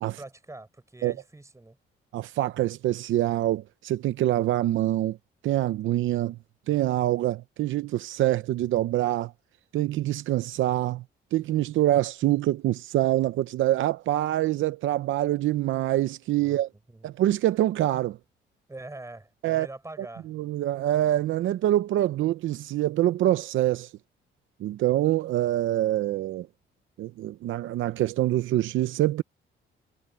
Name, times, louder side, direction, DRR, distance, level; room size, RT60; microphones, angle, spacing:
voice 1, 0.0-1.8 16.4-16.6 16.9-17.1 18.7-20.3, right 2 dB, 15° right, 6.0 m, -44 dB
voice 2, 2.1-5.2 5.4-6.4 6.7-9.3 9.7-11.0 11.3-16.7 17.0-18.2 19.4-19.7 20.3-23.9 24.6-26.5 27.0-29.2, right 14 dB, 80° right, 0.7 m, -25 dB
cardioid pair, 90°, 20 cm